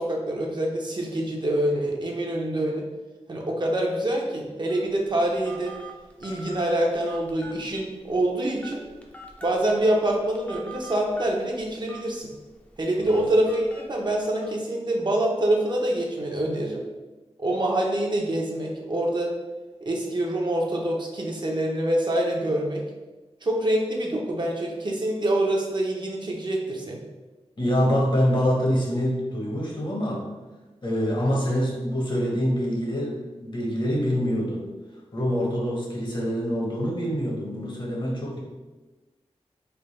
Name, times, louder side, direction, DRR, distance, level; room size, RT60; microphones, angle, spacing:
voice 1, 0.0-2.8 3.3-5.7 6.2-8.8 9.4-12.3 12.8-16.8 17.4-19.3 19.8-22.8 23.4-27.0, right 1 dB, 40° right, -1 dB, 0.6 m, -25 dB
Telephone, 4.7-14.5, right 3 dB, 10° left, 0.4 m, -45 dB
voice 2, 27.6-30.3 30.8-34.7 35.1-38.4, equal, 45° left, -2 dB, 0.8 m, -25 dB
3.4 x 2.1 x 4.0 m, 1.2 s
wide cardioid pair, 100°, 11 cm